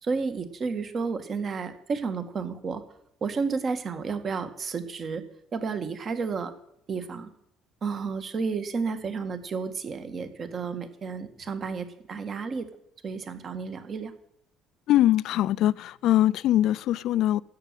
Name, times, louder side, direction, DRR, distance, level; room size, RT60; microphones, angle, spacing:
voice 1, 0.0-2.8 3.2-5.2 5.5-6.5 6.9-7.3 7.8-12.7 13.0-14.1, right 5 dB, 35° right, 9 dB, 1.6 m, -31 dB
voice 2, 14.9-17.4, left 13 dB, 60° left, 19 dB, 0.5 m, -22 dB
13.5 x 8.7 x 9.1 m, 0.73 s
cardioid pair, 140°, 0 cm